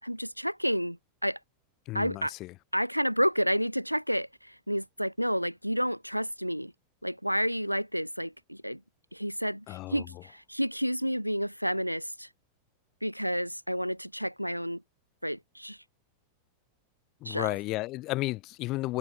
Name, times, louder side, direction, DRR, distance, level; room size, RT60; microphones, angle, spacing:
voice 1, 0.0-1.4 1.9-2.3 2.7-6.7 7.0-8.8 9.1-12.3 13.0-14.8 15.2-15.8 17.2-17.5, equal, 90° right, 4.8 m, -30 dB
voice 2, 1.9-2.5 9.7-10.1 17.2-19.0, left 19 dB, 40° left, 6.0 m, -33 dB
figure-of-eight pair, 90°, 0 cm